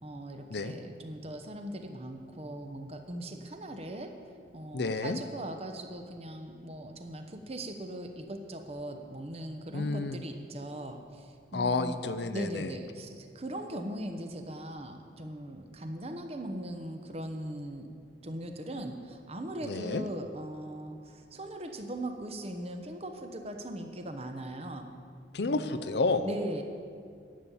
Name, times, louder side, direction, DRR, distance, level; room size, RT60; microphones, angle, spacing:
voice 1, 0.0-4.2 4.5-12.0 12.3-17.9 18.2-24.9 25.5-25.8 26.2-26.6, right 1 dB, 35° right, 5 dB, 0.9 m, -39 dB
voice 2, 4.7-5.2 9.7-10.2 11.5-12.7 19.6-20.0 25.3-26.3, left 3 dB, 65° left, 10 dB, 0.6 m, -30 dB
11.0 x 7.2 x 8.4 m, 2.2 s
head